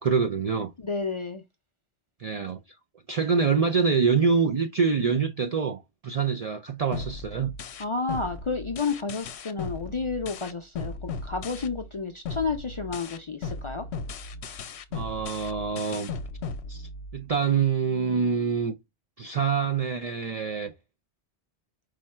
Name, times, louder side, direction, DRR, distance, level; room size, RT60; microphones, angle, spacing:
voice 1, 0.0-0.7 2.2-2.6 3.1-7.5 14.9-16.1 16.7-18.7 19.2-20.7, right 5 dB, 55° right, 0.4 m, -25 dB
voice 2, 0.8-1.4 7.8-13.9, left 4 dB, 45° left, 0.4 m, -31 dB
sound 1, 6.9-11.9 12.2-17.3, left 4 dB, 90° left, 0.9 m, -37 dB
4.9 x 2.2 x 4.2 m
omnidirectional pair, 1.1 m